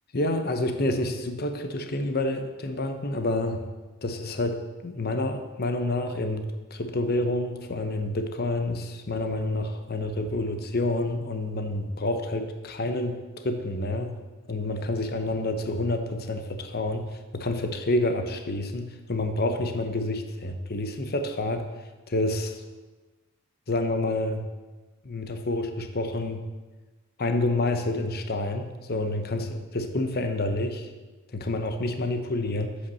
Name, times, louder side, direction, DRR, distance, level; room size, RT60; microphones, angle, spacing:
voice 1, 0.1-3.6 4.0-4.6 4.8-13.2 13.4-14.2 14.5-17.1 17.3-21.7 22.1-22.6 23.7-24.4 25.0-26.4 27.2-30.9 31.3-32.7, left 2 dB, 45° left, 7 dB, 0.9 m, -28 dB
8.4 x 8.3 x 6.9 m, 1.2 s
head